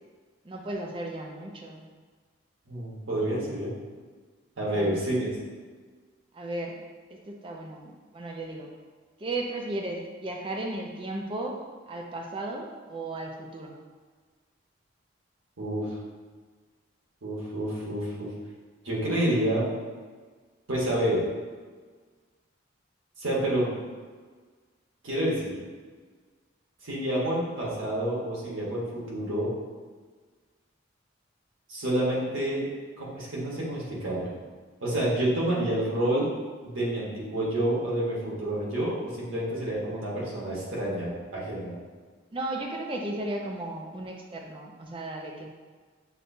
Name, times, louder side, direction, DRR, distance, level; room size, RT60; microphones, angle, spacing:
voice 1, 0.4-1.8 4.7-5.0 6.3-6.8 7.1-8.7 9.2-11.6 11.9-13.8 42.3-45.5, right 2 dB, 25° right, 1 dB, 0.4 m, -35 dB
voice 2, 2.7-3.7 4.6-5.3 15.6-16.0 17.2-18.3 18.8-19.7 20.7-21.2 23.2-23.8 25.0-25.5 26.8-29.5 31.7-32.7 33.0-34.3 34.8-36.3 36.6-41.7, right 1 dB, 75° right, -6 dB, 1.3 m, -28 dB
6.7 x 2.2 x 2.7 m, 1.5 s
head